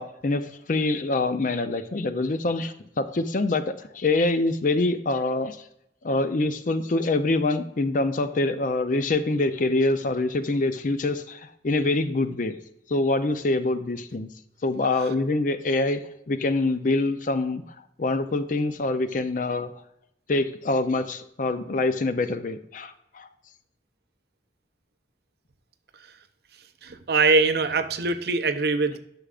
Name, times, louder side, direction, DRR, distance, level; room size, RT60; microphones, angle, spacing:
voice 1, 0.0-5.6 6.0-12.6 12.9-14.3 14.6-16.0 16.3-17.6 18.0-19.7 20.3-23.3, left 2 dB, 50° left, 10 dB, 0.5 m, -25 dB
voice 2, 26.8-29.0, right 4 dB, 60° right, 9 dB, 0.6 m, -22 dB
9.9 x 6.3 x 2.4 m, 0.76 s
head